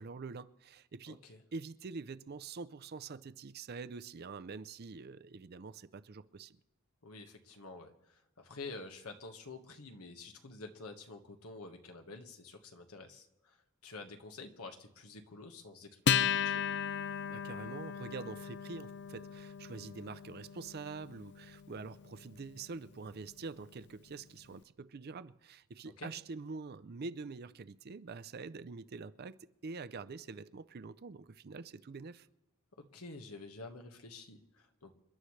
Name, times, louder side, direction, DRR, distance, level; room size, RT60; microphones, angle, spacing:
voice 1, 0.0-1.2 1.5-6.6 17.3-32.3, right 4 dB, 45° right, 0.5 m, -45 dB
voice 2, 1.1-1.4 7.0-16.6 26.0-26.1 32.9-34.9, left 3 dB, 85° left, 1.5 m, -49 dB
Acoustic guitar, 16.1-22.9, left 8 dB, 50° left, 0.5 m, -36 dB
28.5 x 11.5 x 3.2 m
head